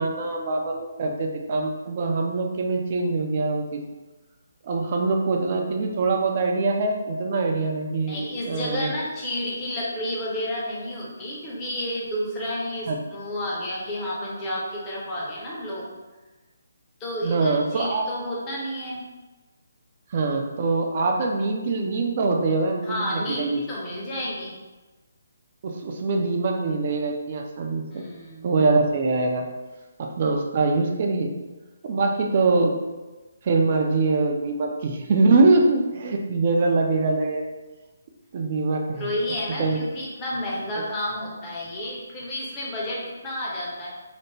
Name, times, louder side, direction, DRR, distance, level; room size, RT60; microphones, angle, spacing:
voice 1, 0.0-3.8 4.6-8.9 12.9-13.0 17.2-18.0 20.1-23.6 25.6-28.0 28.4-29.4 30.0-31.3 31.8-32.8 33.4-37.5 38.3-39.1 39.6-39.8, right 3 dB, 40° right, 2 dB, 0.4 m, -23 dB
voice 2, 8.1-15.9 17.0-19.0 22.8-24.5 27.9-28.6 39.0-43.9, left 1 dB, 20° left, -5 dB, 0.8 m, -31 dB
3.3 x 2.1 x 3.2 m, 1.2 s
figure-of-eight pair, 145°, 0 cm